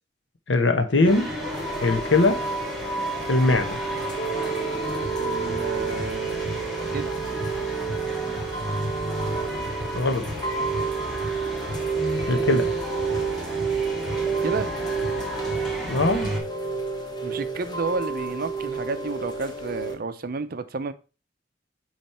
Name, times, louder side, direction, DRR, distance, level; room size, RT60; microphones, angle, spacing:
voice 1, 0.5-1.3 1.8-2.4 3.3-3.8 9.9-10.2 12.3-12.7 15.9-16.3, left 2 dB, 85° left, 6 dB, 1.0 m, -21 dB
sound 1, 1.0-16.4, equal, ahead, 2.1 m, -32 dB
Chime / Rain, 1.5-19.9, right 5 dB, 25° left, 1.2 m, -30 dB
voice 2, 5.2-7.1 14.4-14.7 17.2-20.9, right 3 dB, 55° right, 11 dB, 0.6 m, -31 dB
8.7 x 3.2 x 4.3 m, 0.33 s
head